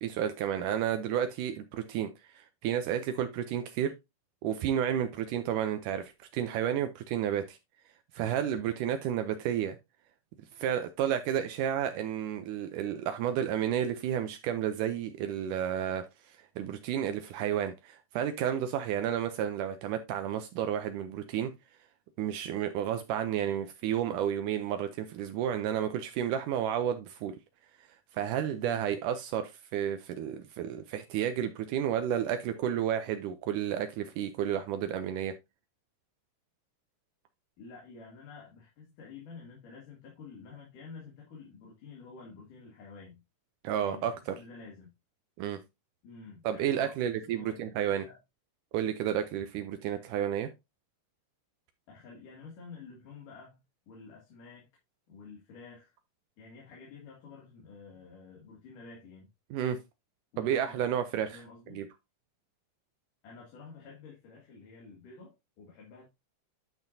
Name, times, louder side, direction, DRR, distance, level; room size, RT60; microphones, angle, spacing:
voice 1, 0.0-3.9 4.4-7.6 8.1-9.8 10.6-21.5 22.2-27.3 28.1-35.3 43.6-44.4 45.4-45.6 46.4-48.1 48.7-50.5 59.5-59.8 60.4-61.4 61.7-61.9, right 9 dB, 80° right, 2.2 m, -31 dB
voice 2, 28.6-28.9 37.6-43.2 43.8-44.9 46.0-47.0 47.3-48.2 51.9-53.6 53.9-54.7 55.1-55.9 56.4-59.3 60.3-60.8 61.3-61.8 63.2-66.1, left 4 dB, 80° left, 3.7 m, -50 dB
10.5 x 6.1 x 2.7 m
omnidirectional pair, 3.7 m